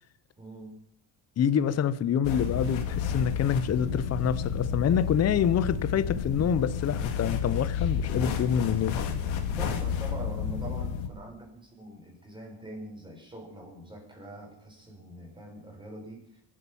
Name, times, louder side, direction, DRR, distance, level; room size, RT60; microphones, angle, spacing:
voice 1, 0.4-0.8 9.6-16.3, equal, 10° right, 5.7 m, -43 dB
voice 2, 1.4-9.0, left 8 dB, 35° left, 0.7 m, -26 dB
sound 1, 2.2-11.1, left 7 dB, 80° left, 2.3 m, -31 dB
22.5 x 8.6 x 7.1 m
cardioid pair, 135°, 45 cm